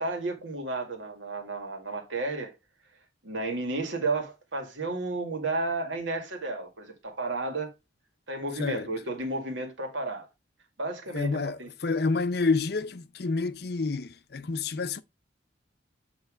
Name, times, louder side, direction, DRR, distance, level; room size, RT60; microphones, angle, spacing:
voice 1, 0.0-2.5 3.2-7.7 8.3-10.3 10.8-11.7, right 2 dB, 85° right, 2.0 m, -32 dB
voice 2, 8.6-8.9 11.1-15.0, left 4 dB, 55° left, 0.6 m, -28 dB
8.2 x 3.1 x 5.0 m
head